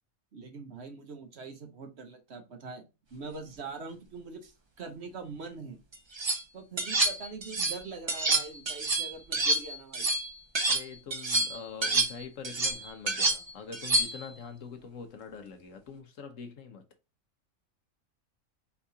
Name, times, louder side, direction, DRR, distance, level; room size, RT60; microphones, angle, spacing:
voice 1, 0.3-5.8 6.5-10.1, right 4 dB, 55° right, 1.1 m, -43 dB
sound 1, 5.9-6.4 6.8-7.8 8.1-10.8 11.1-14.3, right 2 dB, 35° right, 0.4 m, -28 dB
voice 2, 10.7-16.8, left 6 dB, 70° left, 1.2 m, -44 dB
4.6 x 3.5 x 2.6 m
omnidirectional pair, 1.4 m